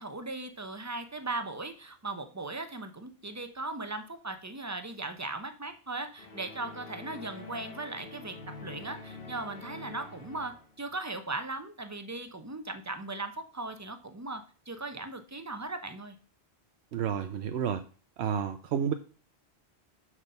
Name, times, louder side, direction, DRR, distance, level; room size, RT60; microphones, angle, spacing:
voice 1, 0.0-16.1, right 2 dB, 15° right, 8 dB, 0.8 m, -38 dB
sound 1, 6.2-10.8, left 3 dB, 60° left, 1.6 m, -46 dB
voice 2, 16.9-17.8 18.2-18.9, right 8 dB, 85° right, 9 dB, 0.9 m, -30 dB
7.4 x 6.0 x 5.6 m, 0.39 s
omnidirectional pair, 1.1 m